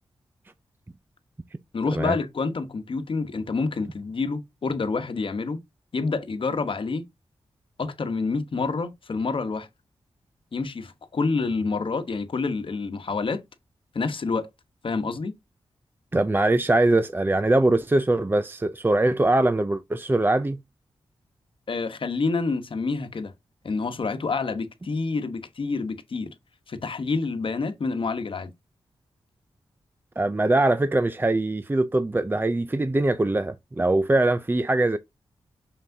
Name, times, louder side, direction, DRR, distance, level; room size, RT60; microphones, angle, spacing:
voice 1, 1.7-5.6 5.9-7.1 7.8-9.7 10.5-13.4 13.9-14.5 14.8-15.4 21.7-23.3 23.6-26.3 26.7-28.5, left 4 dB, 60° left, 1.2 m, -28 dB
voice 2, 16.1-20.6 30.2-35.0, right 2 dB, 20° right, 0.5 m, -22 dB
6.4 x 5.8 x 2.8 m
cardioid pair, 75°, 10 cm